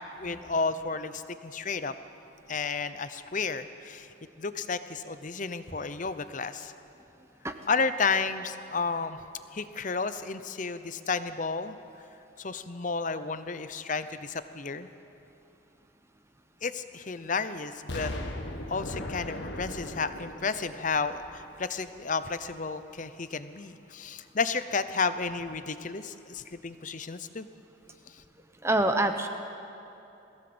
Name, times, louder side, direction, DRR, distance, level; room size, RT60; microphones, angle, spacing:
voice 1, 0.2-1.9 2.5-4.1 4.4-6.7 7.7-9.2 9.5-11.8 12.4-14.9 16.6-18.1 18.7-27.5, left 4 dB, 40° left, 12 dB, 0.7 m, -32 dB
Explosion, 17.9-21.8 22.3-22.4, left 1 dB, 65° left, 1.6 m, -38 dB
voice 2, 28.6-29.3, right 1 dB, 15° right, 7 dB, 0.8 m, -26 dB
21.0 x 16.0 x 7.9 m, 2.8 s
head